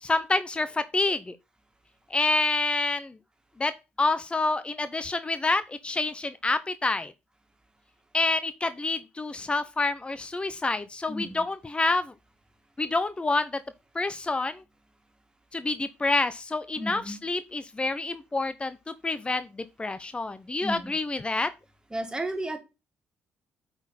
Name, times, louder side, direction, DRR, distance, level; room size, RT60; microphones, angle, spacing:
voice 1, 0.0-1.4 2.1-3.2 3.6-3.7 4.0-7.1 8.1-12.1 12.8-13.5 13.9-14.6 15.5-18.8 19.0-21.5, left 3 dB, 20° left, 0.7 m, -28 dB
voice 2, 11.1-11.5 16.8-17.2 20.6-21.0 21.9-22.6, right 1 dB, 15° right, 2.1 m, -33 dB
8.7 x 4.1 x 4.1 m
hypercardioid pair, 50°, 5 cm